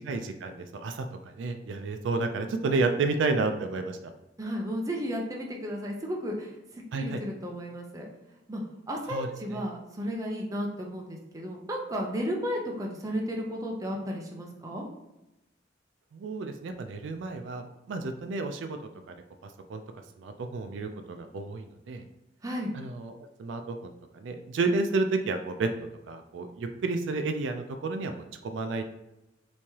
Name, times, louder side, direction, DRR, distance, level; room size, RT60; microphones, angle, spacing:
voice 1, 0.0-4.1 6.9-7.2 9.1-9.6 16.1-18.8 19.1-19.2 19.4-19.8 20.2-22.1 22.7-25.7 26.1-28.8, right 3 dB, 75° right, 6 dB, 0.3 m, -31 dB
voice 2, 4.4-14.8 22.4-22.7, equal, 20° right, 0 dB, 0.6 m, -34 dB
3.4 x 3.1 x 2.8 m, 0.92 s
head